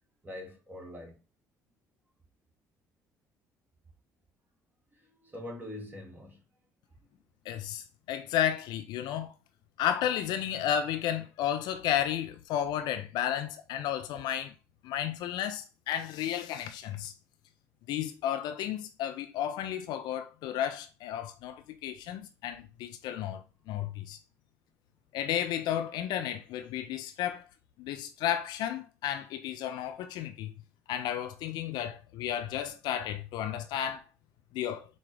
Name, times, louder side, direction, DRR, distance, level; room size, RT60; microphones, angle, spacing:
voice 1, 0.2-1.2 4.9-6.4 7.0-7.1, left 1 dB, 25° right, 1.6 m, -44 dB
voice 2, 7.5-9.3 9.8-14.5 14.8-17.1 17.9-23.4 23.7-24.2 25.1-27.4 27.8-30.5 30.9-34.0 34.5-34.8, left 10 dB, 55° left, 0.4 m, -33 dB
6.2 x 2.3 x 3.1 m
figure-of-eight pair, 50°, 8 cm